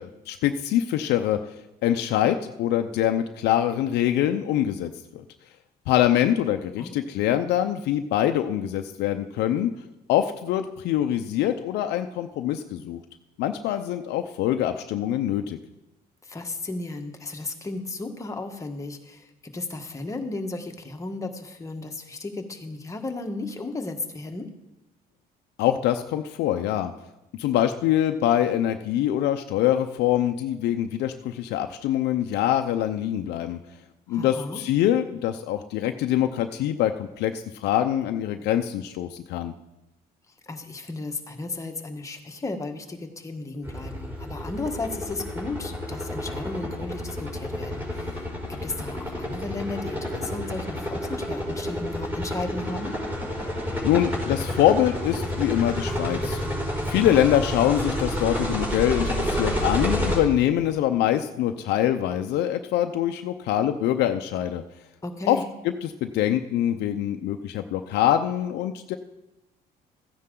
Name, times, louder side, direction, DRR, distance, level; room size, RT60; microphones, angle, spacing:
voice 1, 0.0-1.4 1.8-5.2 5.9-9.7 10.1-13.0 13.4-15.6 25.6-26.9 27.4-33.6 34.1-39.5 53.8-56.4 56.9-64.6 65.3-65.4 65.8-69.0, left 11 dB, 80° left, 6 dB, 0.6 m, -24 dB
voice 2, 16.2-24.5 34.1-34.6 40.4-52.9 65.0-65.4, left 2 dB, 20° left, 4 dB, 1.3 m, -34 dB
sound 1, 43.6-60.2, left 1 dB, 10° right, 4.0 m, -30 dB
14.0 x 9.8 x 3.8 m, 0.94 s
cardioid pair, 110°, 17 cm